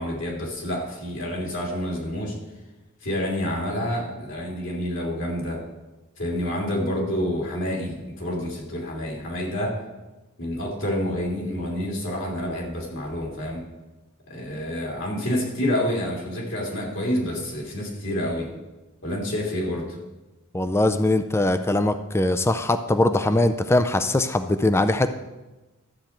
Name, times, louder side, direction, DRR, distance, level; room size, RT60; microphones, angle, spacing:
voice 1, 0.0-2.3 3.0-5.6 6.2-9.8 10.4-13.6 14.3-18.5 19.0-20.0, equal, 60° left, -2 dB, 3.0 m, -28 dB
voice 2, 20.5-25.1, left 2 dB, 10° left, 10 dB, 0.4 m, -21 dB
12.5 x 7.9 x 4.4 m, 1.1 s
head